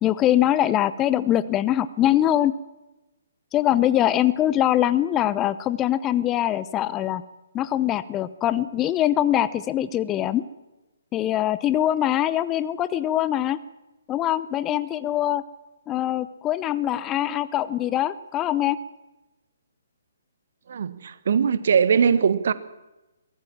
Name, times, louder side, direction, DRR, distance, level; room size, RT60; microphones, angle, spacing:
voice 1, 0.0-2.6 3.5-7.2 7.5-10.5 11.1-13.6 14.1-15.4 15.9-18.8, left 12 dB, 20° left, 16 dB, 0.7 m, -23 dB
voice 2, 20.7-22.5, right 7 dB, 55° right, 15 dB, 1.4 m, -21 dB
23.0 x 18.0 x 7.5 m, 1.0 s
figure-of-eight pair, 130°, 0 cm